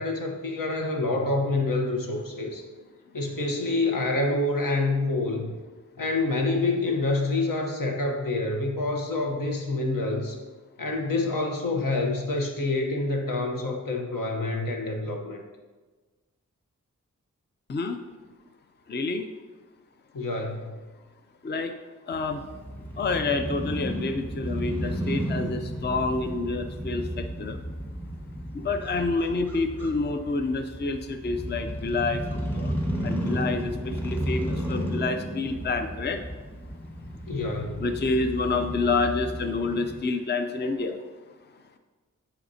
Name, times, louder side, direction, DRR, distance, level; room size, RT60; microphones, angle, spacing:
voice 1, 0.0-2.6 3.1-5.5 6.0-10.4 10.8-15.4 20.1-20.7 37.3-37.8, left 2 dB, 80° left, 2 dB, 1.0 m, -27 dB
voice 2, 18.9-19.3 21.4-21.7 22.1-22.4 23.0-27.6 28.5-32.7 33.0-36.2 37.8-41.0, left 3 dB, 30° left, 7 dB, 0.5 m, -28 dB
Crow / Motorcycle, 22.1-40.0, equal, 5° left, 1.4 m, -33 dB
10.5 x 4.2 x 2.7 m, 1.3 s
cardioid pair, 40°, 33 cm